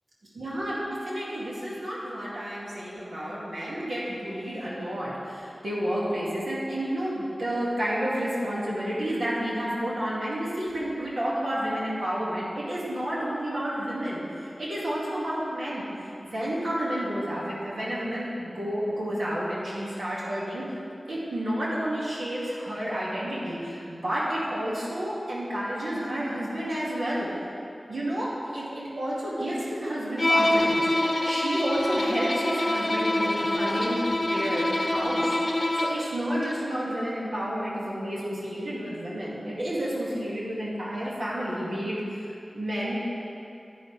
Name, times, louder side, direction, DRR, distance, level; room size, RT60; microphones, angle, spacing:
voice 1, 0.3-15.9 16.2-20.7 21.1-27.3 27.9-30.8 31.1-35.4 35.7-43.1, equal, 90° right, -7 dB, 2.1 m, -30 dB
Bowed string instrument, 30.2-36.1, left 1 dB, 40° left, 0.7 m, -25 dB
9.8 x 9.2 x 3.3 m, 2.7 s
wide cardioid pair, 60°, 0 cm